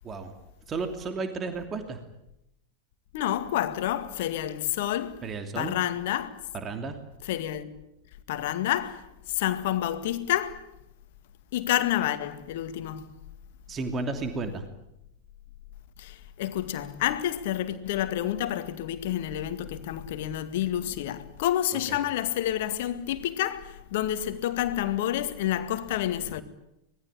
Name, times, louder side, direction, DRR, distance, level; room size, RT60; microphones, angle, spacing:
voice 1, 0.7-2.0 5.2-5.7 6.5-7.0 13.7-14.6 21.7-22.0, right 4 dB, 25° right, 2.9 m, -33 dB
voice 2, 3.1-5.2 5.6-6.3 7.2-7.7 8.3-10.6 11.5-13.1 16.0-26.4, left 12 dB, 50° left, 2.0 m, -29 dB
25.5 x 20.5 x 8.9 m
figure-of-eight pair, 90°, 0 cm